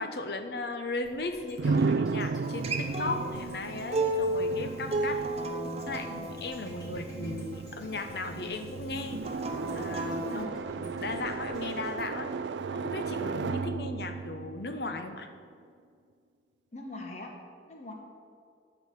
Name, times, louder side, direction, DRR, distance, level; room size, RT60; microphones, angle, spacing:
voice 1, 0.0-5.2 5.9-9.2 9.7-10.5 10.7-12.3 12.7-15.3, left 3 dB, 60° left, 7 dB, 0.9 m, -36 dB
sound 1, 1.0-13.2 13.6-13.7, left 2 dB, 20° left, 2.6 m, -49 dB
sound 2, 1.6-15.4, right 4 dB, 80° right, 0.4 m, -35 dB
Acoustic guitar, 2.4-7.6 9.2-10.4, right 2 dB, 35° right, 0.9 m, -33 dB
voice 2, 16.7-17.3 17.7-17.9, left 1 dB, 40° left, 1 dB, 1.1 m, -41 dB
12.0 x 4.8 x 8.1 m, 2.2 s
head